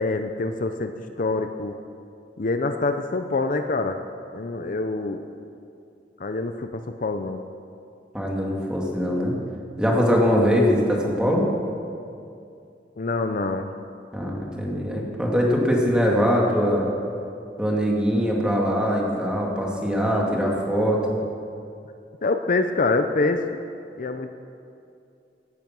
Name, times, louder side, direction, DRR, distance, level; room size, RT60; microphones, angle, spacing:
voice 1, 0.0-1.7 2.4-4.0 4.3-5.2 6.2-7.4 13.0-13.7 22.2-23.4 24.0-24.3, left 3 dB, 50° left, 7 dB, 0.6 m, -25 dB
voice 2, 8.1-9.3 9.8-11.4 14.1-16.9 17.6-21.2, equal, 5° right, -2 dB, 2.4 m, -22 dB
16.5 x 10.5 x 6.1 m, 2.5 s
head